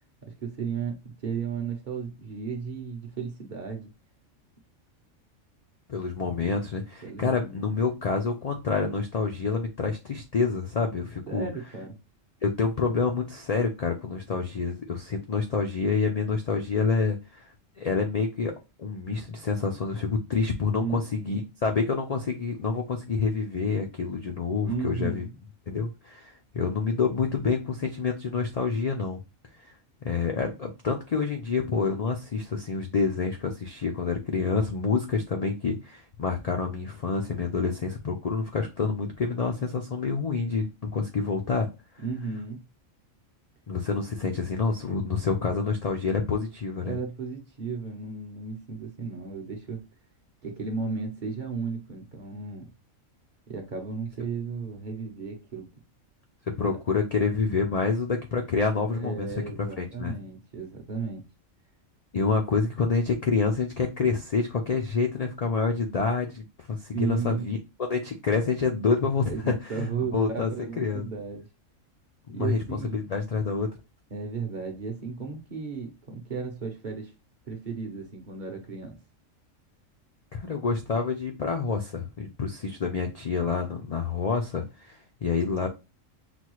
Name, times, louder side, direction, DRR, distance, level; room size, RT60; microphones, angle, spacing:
voice 1, 0.2-3.9 7.0-7.6 11.3-12.0 20.8-21.0 24.7-25.4 42.0-42.6 46.8-49.8 50.4-52.7 53.5-55.7 58.9-61.2 66.9-67.4 69.3-71.5 72.3-73.0 74.1-77.1 77.4-78.9, right 5 dB, 45° right, 0.8 m, -34 dB
voice 2, 5.9-11.5 12.4-17.4 17.8-18.5 18.8-25.3 25.7-29.2 30.0-41.7 43.7-47.0 56.6-59.3 59.8-60.2 62.1-70.5 70.8-71.1 72.3-72.6 72.9-73.7 80.3-85.7, left 4 dB, 65° left, 0.3 m, -27 dB
6.0 x 2.3 x 3.0 m
omnidirectional pair, 1.4 m